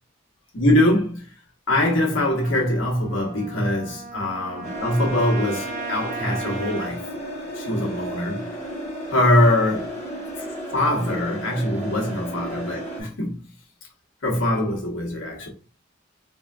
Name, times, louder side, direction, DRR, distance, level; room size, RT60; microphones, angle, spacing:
voice 1, 0.5-1.3 1.7-7.0 7.5-8.5 9.1-10.0 10.4-10.5 10.7-13.4 14.2-15.5, left 1 dB, 70° left, 1.0 m, -22 dB
Trumpet, 2.4-6.9, right 4 dB, 45° right, 0.6 m, -36 dB
sound 1, 4.6-13.0, right 1 dB, 30° left, 1.3 m, -33 dB
3.7 x 2.1 x 2.4 m
head